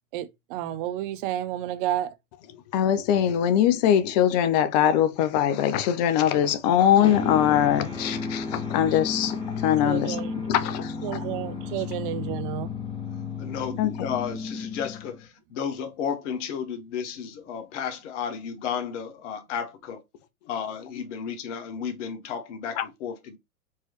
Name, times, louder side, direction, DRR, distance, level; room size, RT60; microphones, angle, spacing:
voice 1, 0.1-2.1 9.8-10.3 11.0-12.7, right 12 dB, 40° right, 0.6 m, -31 dB
voice 2, 2.7-10.2 10.5-10.9 13.8-14.1 22.8-22.9, left 10 dB, 30° left, 0.5 m, -22 dB
sound 1, 7.0-15.3, left 5 dB, 10° left, 1.3 m, -33 dB
voice 3, 13.4-20.0 20.5-23.4, left 7 dB, 50° left, 1.3 m, -33 dB
4.6 x 3.1 x 3.0 m
hypercardioid pair, 120°, 44 cm